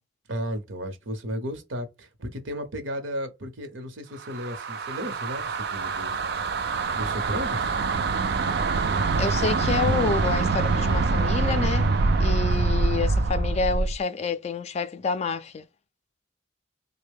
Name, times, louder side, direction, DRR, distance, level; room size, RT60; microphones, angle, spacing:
voice 1, 0.3-6.2 6.9-7.8, equal, 85° right, 0.9 m, -34 dB
sound 1, 4.2-14.0, right 3 dB, 55° right, 0.4 m, -25 dB
voice 2, 9.2-11.9 12.2-15.7, left 5 dB, 35° left, 0.3 m, -28 dB
3.4 x 2.2 x 3.5 m
head